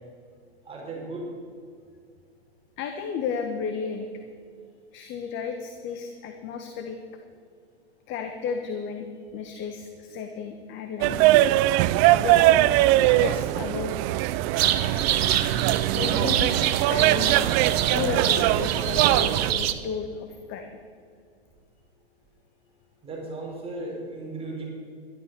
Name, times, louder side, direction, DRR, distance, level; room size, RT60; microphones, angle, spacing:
voice 1, 0.6-1.3 23.0-24.6, right 2 dB, 15° right, -2 dB, 4.6 m, -35 dB
voice 2, 2.8-4.1 4.9-7.0 8.1-11.2 12.2-12.6 13.1-13.9 15.9-17.4 17.9-20.7, left 6 dB, 35° left, 6 dB, 1.3 m, -33 dB
sound 1, 11.0-19.5, right 15 dB, 35° right, 0.4 m, -21 dB
sound 2, 14.6-19.7, right 10 dB, 65° right, 1.1 m, -26 dB
12.5 x 12.0 x 6.9 m, 2.2 s
hypercardioid pair, 115°, 32 cm